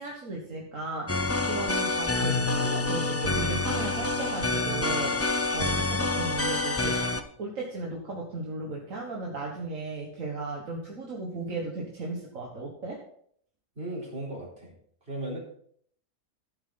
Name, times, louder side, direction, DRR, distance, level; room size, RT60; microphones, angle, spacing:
voice 1, 0.0-7.1 7.4-13.0, right 3 dB, 75° right, -1 dB, 1.9 m, -36 dB
sound 1, 1.1-7.2, left 2 dB, 20° left, 0.3 m, -28 dB
Keyboard (musical), 2.2-5.9, left 4 dB, 70° left, 1.9 m, -35 dB
voice 2, 13.8-14.7 15.1-15.4, right 1 dB, 50° right, -4 dB, 4.1 m, -36 dB
14.5 x 7.6 x 3.9 m, 0.63 s
omnidirectional pair, 1.4 m